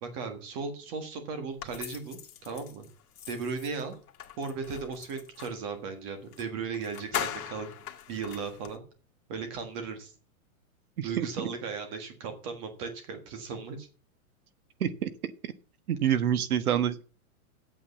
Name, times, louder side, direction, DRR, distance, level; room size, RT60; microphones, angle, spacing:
voice 1, 0.0-2.9 3.3-4.0 4.4-7.7 8.1-8.8 9.3-10.1 11.0-13.9, right 5 dB, 20° right, 7 dB, 1.5 m, -36 dB
sound 1, 1.6-5.6 6.3-6.5 6.7-8.8, left 10 dB, 85° left, 1.7 m, -40 dB
voice 2, 11.0-11.5 14.8-15.1 15.4-15.5 15.9-17.0, right 9 dB, 80° right, 14 dB, 1.4 m, -27 dB
8.5 x 7.6 x 7.0 m, 0.37 s
supercardioid pair, 180°, 44 cm